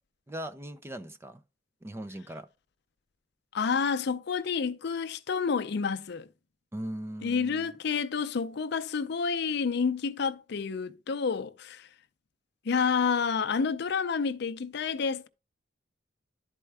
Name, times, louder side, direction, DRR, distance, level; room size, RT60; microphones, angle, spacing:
voice 1, 0.3-1.4 1.8-2.5 6.7-7.7, right 1 dB, 15° right, 0.4 m, -39 dB
voice 2, 3.5-6.3 7.2-11.9 12.7-15.3, left 5 dB, 60° left, 0.5 m, -29 dB
11.0 x 4.5 x 3.3 m
head